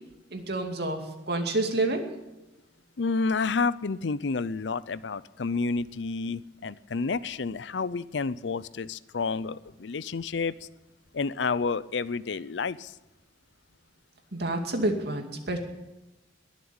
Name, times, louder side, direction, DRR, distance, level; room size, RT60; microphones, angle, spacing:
voice 1, 0.3-1.0 1.3-2.1 14.3-15.6, right 2 dB, 60° right, 4 dB, 2.5 m, -28 dB
voice 2, 3.0-10.5 11.1-12.9, left 4 dB, 75° left, 17 dB, 0.6 m, -30 dB
21.5 x 7.6 x 8.8 m, 0.99 s
head